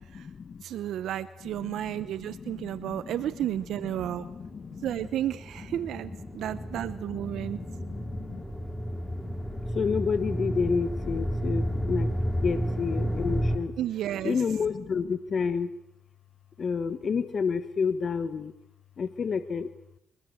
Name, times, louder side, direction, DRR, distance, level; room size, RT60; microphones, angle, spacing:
voice 1, 0.0-0.6 1.4-5.1 5.7-8.5 9.7-12.1 12.4-13.7 14.2-15.7 16.6-18.5 19.0-19.7, left 5 dB, 50° left, 12 dB, 1.3 m, -31 dB
voice 2, 0.6-4.3 4.8-7.6 13.8-14.4, right 11 dB, 80° right, 15 dB, 0.9 m, -32 dB
sound 1, 3.2-13.6, equal, 10° left, 4.8 m, -32 dB
24.0 x 21.5 x 7.9 m, 0.78 s
cardioid pair, 70°, 0 cm